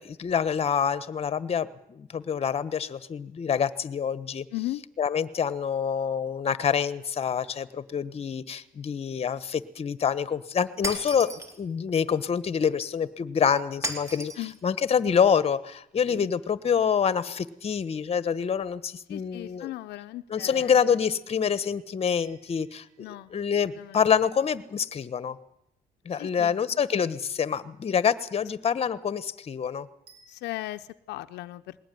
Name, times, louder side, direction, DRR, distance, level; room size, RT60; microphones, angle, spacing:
voice 1, 0.0-4.4 5.0-11.3 11.6-14.3 14.6-19.7 20.3-25.4 26.0-29.9, left 7 dB, 35° left, 15 dB, 1.3 m, -26 dB
voice 2, 4.5-4.8 14.4-14.5 16.1-16.3 19.1-20.9 23.0-23.3 23.7-24.1 26.2-26.6 30.3-31.8, left 16 dB, 80° left, 8 dB, 0.8 m, -37 dB
Shatter, 10.8-11.6 13.8-14.6, right 1 dB, 15° right, 3.4 m, -34 dB
sound 1, 22.1-24.2 30.1-30.8, right 4 dB, 65° right, 5.9 m, -60 dB
21.0 x 18.0 x 9.4 m, 0.80 s
cardioid pair, 110°, 17 cm